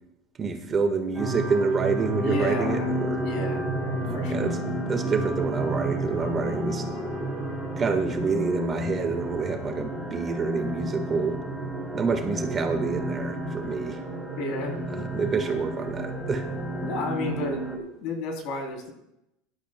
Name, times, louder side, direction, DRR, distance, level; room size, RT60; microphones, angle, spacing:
voice 1, 0.4-3.2 4.0-4.6 4.9-6.8 7.8-11.4 11.9-14.0 14.9-16.5, right 5 dB, 25° right, 5 dB, 1.4 m, -27 dB
sound 1, 1.1-17.8, right 1 dB, 5° left, 2.9 m, -31 dB
voice 2, 2.2-3.0 3.2-4.5 14.4-14.8 16.8-18.9, left 2 dB, 60° left, 2 dB, 3.1 m, -32 dB
18.0 x 12.0 x 2.2 m, 0.84 s
supercardioid pair, 140°, 0 cm